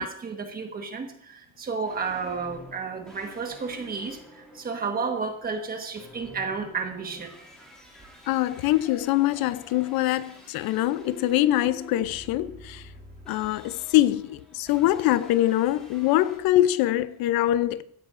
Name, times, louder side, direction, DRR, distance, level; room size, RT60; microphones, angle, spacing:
voice 1, 0.0-7.3, right 5 dB, 25° right, 1.4 m, -32 dB
sound 1, 1.8-16.4, equal, ahead, 2.5 m, -48 dB
voice 2, 8.3-12.8 13.3-17.8, left 14 dB, 80° left, 0.6 m, -23 dB
16.0 x 12.5 x 2.5 m
cardioid pair, 180°, 36 cm